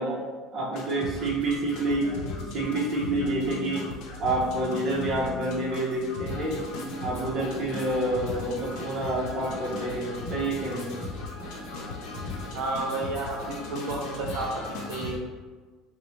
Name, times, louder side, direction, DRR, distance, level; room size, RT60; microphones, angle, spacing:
voice 1, 0.0-0.3 12.5-15.2, right 2 dB, 70° right, -1 dB, 0.6 m, -32 dB
voice 2, 0.5-2.1 2.5-3.9 4.2-6.6 7.0-10.9, right 2 dB, 25° right, -5 dB, 0.8 m, -28 dB
sound 1, 0.7-15.2, left 2 dB, 55° left, 0.7 m, -39 dB
sound 2, 1.1-15.2, left 5 dB, 75° left, 0.3 m, -43 dB
sound 3, 1.7-12.0 12.6-12.8, left 2 dB, 25° left, 1.0 m, -43 dB
4.1 x 2.0 x 3.1 m, 1.4 s
cardioid pair, 170°, 0 cm